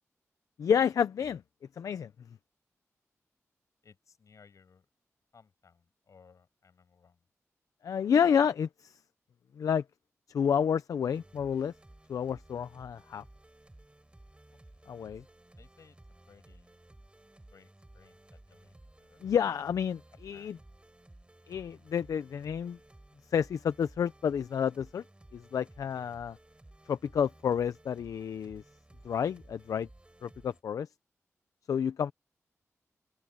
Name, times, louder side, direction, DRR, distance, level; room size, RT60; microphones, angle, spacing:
voice 1, 0.6-1.4 1.8-2.1 7.8-9.0 9.6-9.8 10.3-11.7 12.1-13.2 14.9-15.2 19.2-20.6 21.5-22.8 23.3-25.0 25.3-26.4 26.9-28.6 29.0-29.9 30.2-30.9 31.7-32.1, left 7 dB, 90° left, 0.6 m, -29 dB
voice 2, 3.8-4.9 5.3-7.2 14.7-14.8 15.2-15.3 15.6-16.0 16.3-16.7 17.5-19.2 20.3-20.6, left 5 dB, 70° left, 7.0 m, -61 dB
sound 1, 11.1-30.6, right 1 dB, 20° right, 5.4 m, -56 dB
open air
cardioid pair, 60°, 6 cm